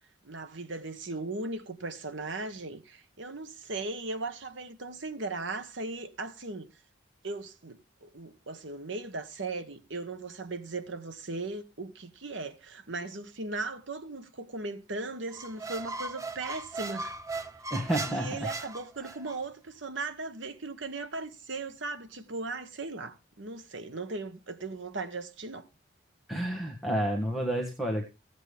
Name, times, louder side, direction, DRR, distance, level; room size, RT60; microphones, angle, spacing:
voice 1, 0.2-6.7 7.2-17.2 18.1-25.7, right 3 dB, 75° right, 1.2 m, -38 dB
Squeak, 15.3-19.4, right 3 dB, 15° right, 0.6 m, -38 dB
voice 2, 17.7-18.5 26.3-28.0, right 1 dB, ahead, 1.5 m, -30 dB
15.5 x 8.1 x 3.4 m
head